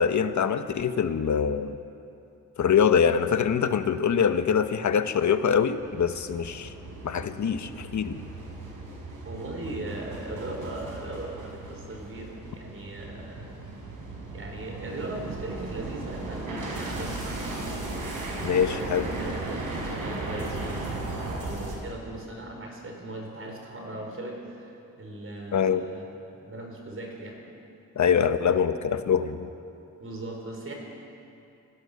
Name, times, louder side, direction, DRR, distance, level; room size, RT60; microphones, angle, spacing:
voice 1, 0.0-1.8 2.6-6.7 7.0-8.1 18.4-19.1 25.5-25.9 28.0-29.5, left 7 dB, 60° left, 9 dB, 1.1 m, -24 dB
sound 1, 5.8-21.8, right 2 dB, 75° right, 5.8 m, -36 dB
voice 2, 9.2-13.5 14.3-17.5 18.7-21.2 21.4-26.1 26.4-27.4 30.0-30.7, right 2 dB, 40° right, 1 dB, 4.7 m, -38 dB
27.0 x 17.5 x 6.8 m, 2.7 s
wide cardioid pair, 125°, 32 cm